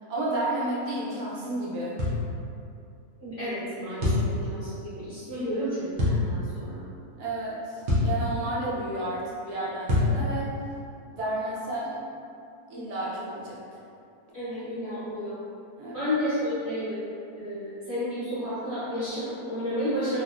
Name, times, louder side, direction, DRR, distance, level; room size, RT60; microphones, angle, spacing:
voice 1, 0.1-2.0 5.3-5.5 7.2-10.5 11.1-12.0 12.7-13.6 15.8-16.0, right 1 dB, 70° right, -6 dB, 1.2 m, -31 dB
sound 1, 2.0-2.2 4.0-4.3 6.0-6.2 7.9-8.2 9.9-10.2, left 2 dB, 55° right, 0.9 m, -23 dB
voice 2, 3.2-6.8 14.3-15.4 15.9-17.0 17.4-20.2, equal, 45° left, -15 dB, 1.1 m, -31 dB
3.4 x 2.5 x 2.4 m, 2.6 s
omnidirectional pair, 1.7 m